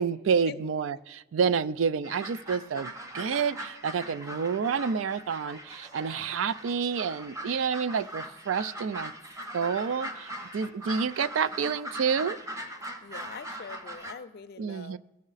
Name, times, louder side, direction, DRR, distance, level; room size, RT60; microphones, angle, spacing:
voice 1, 0.0-9.1 9.5-12.4 14.6-15.0, right 6 dB, 85° right, 16 dB, 0.4 m, -29 dB
sound 1, 2.0-14.1, right 1 dB, 15° right, 0.9 m, -41 dB
voice 2, 13.0-15.0, left 5 dB, 55° left, 14 dB, 0.4 m, -43 dB
17.0 x 6.4 x 4.0 m, 1.1 s
head